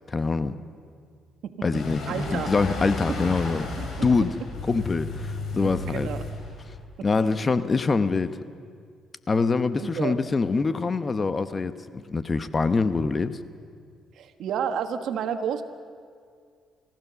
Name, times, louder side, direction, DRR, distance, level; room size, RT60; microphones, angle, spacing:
voice 1, 0.1-0.5 1.6-2.0 2.3-3.7 4.0-4.4 4.7-6.1 7.0-8.4 9.3-13.4, left 4 dB, 30° left, 12 dB, 0.9 m, -24 dB
sound 1, 1.7-6.8, left 2 dB, 65° left, 5.0 m, -33 dB
voice 2, 2.1-2.5 3.8-4.3 5.6-6.2 7.0-7.1 9.8-10.2 14.2-15.6, right 8 dB, 75° right, 8 dB, 1.4 m, -31 dB
28.5 x 15.0 x 6.9 m, 2.1 s
cardioid pair, 90°, 0 cm